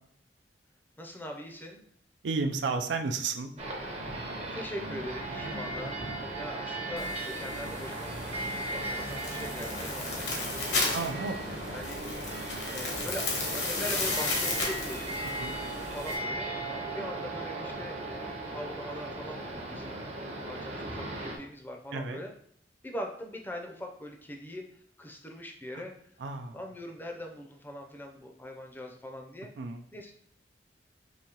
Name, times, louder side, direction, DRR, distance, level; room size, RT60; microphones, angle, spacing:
voice 1, 1.0-1.8 4.5-6.0 6.4-8.1 8.5-11.0 11.7-12.0 12.4-13.3 13.5-22.3 22.8-24.6 25.0-25.9 26.5-29.5 29.9-30.1, left 1 dB, 10° left, 2 dB, 0.5 m, -42 dB
voice 2, 2.2-3.5 10.9-11.6 15.4-15.6 21.9-22.2 25.7-25.8 26.2-26.6 29.6-29.9, right 4 dB, 85° right, 5 dB, 0.4 m, -32 dB
sound 1, 3.6-21.4, right 2 dB, 35° right, 0.7 m, -37 dB
sound 2, 7.0-16.1, left 3 dB, 70° left, 1.1 m, -35 dB
5.0 x 2.7 x 2.9 m, 0.66 s
head